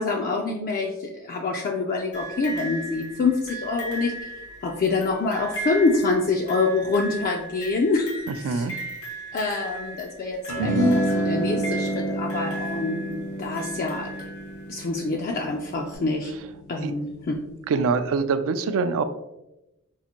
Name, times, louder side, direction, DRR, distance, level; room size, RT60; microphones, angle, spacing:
voice 1, 0.0-4.3 4.6-8.7 9.3-13.0 13.4-14.1 14.7-16.3 16.7-17.3, left 3 dB, 40° left, 1 dB, 0.4 m, -26 dB
sound 1, 2.1-15.0 15.9-16.0, right 1 dB, 85° left, 1.4 m, -37 dB
voice 2, 8.3-8.7 16.8-16.9 17.7-19.0, right 4 dB, 65° right, 10 dB, 0.3 m, -24 dB
sound 2, 10.5-17.0, right 1 dB, 65° left, 0.7 m, -28 dB
5.4 x 2.5 x 2.9 m, 0.92 s
head